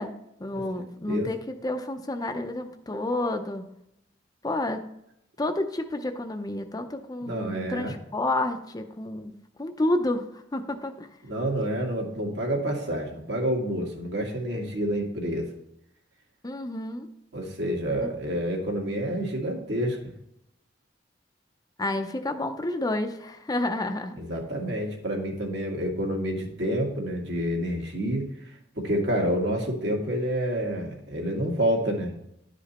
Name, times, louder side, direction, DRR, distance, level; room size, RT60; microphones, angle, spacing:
voice 1, 0.0-3.6 4.4-4.8 5.4-11.1 16.4-17.1 18.0-18.1 21.8-24.1, left 1 dB, 20° left, 6 dB, 0.6 m, -30 dB
voice 2, 7.2-8.0 11.3-15.5 17.3-20.0 24.2-32.1, equal, 65° right, 0 dB, 2.0 m, -28 dB
11.0 x 5.1 x 4.2 m, 0.78 s
head